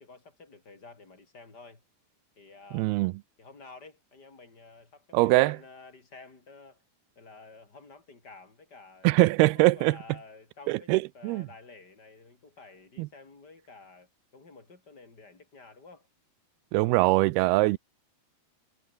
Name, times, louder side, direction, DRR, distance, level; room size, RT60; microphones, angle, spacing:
voice 1, 0.0-1.8 2.4-2.9 3.4-6.8 7.1-9.1 9.5-16.1, left 3 dB, 25° left, 4.9 m, -51 dB
voice 2, 2.7-3.1 5.1-5.6 9.0-10.0 10.7-11.5 13.0-13.1 16.7-17.8, right 21 dB, 80° right, 2.4 m, -22 dB
omnidirectional pair, 4.9 m